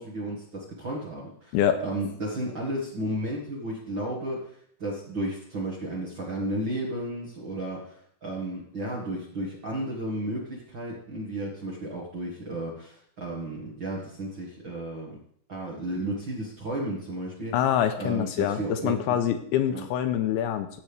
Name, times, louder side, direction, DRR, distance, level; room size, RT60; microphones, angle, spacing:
voice 1, 0.0-15.2 15.5-17.5 18.0-19.2 19.7-19.8, right 1 dB, 45° right, -4 dB, 1.7 m, -33 dB
voice 2, 17.5-20.7, left 10 dB, 85° left, 8 dB, 2.5 m, -25 dB
15.0 x 7.9 x 3.5 m, 0.67 s
omnidirectional pair, 4.7 m